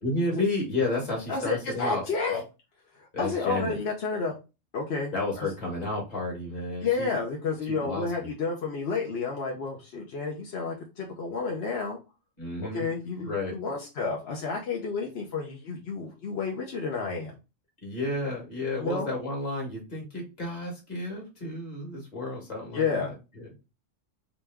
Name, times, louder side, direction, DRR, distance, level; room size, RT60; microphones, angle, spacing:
voice 1, 0.0-2.0 3.1-3.8 5.1-7.2 7.6-8.3 12.4-12.9 13.2-13.6 17.8-23.6, left 2 dB, 35° left, -1 dB, 1.5 m, -32 dB
voice 2, 1.3-2.4 3.0-4.3 4.7-5.5 6.8-12.0 12.7-17.3 18.8-19.1 22.7-23.1, left 4 dB, 60° left, -1 dB, 0.9 m, -31 dB
3.3 x 3.0 x 3.4 m, 0.28 s
omnidirectional pair, 1.3 m